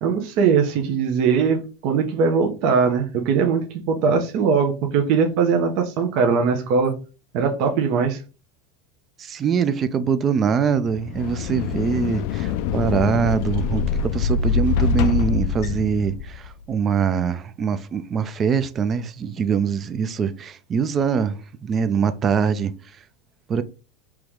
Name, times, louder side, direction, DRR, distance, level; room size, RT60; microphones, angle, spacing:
voice 1, 0.0-6.9 7.3-8.2, right 5 dB, 55° right, 0.8 m, -20 dB
voice 2, 9.2-22.7 23.5-23.6, right 6 dB, 25° right, 0.4 m, -23 dB
sound 1, 10.9-16.5, left 6 dB, 60° left, 0.3 m, -24 dB
4.8 x 3.0 x 3.6 m
supercardioid pair, 145°, 0 cm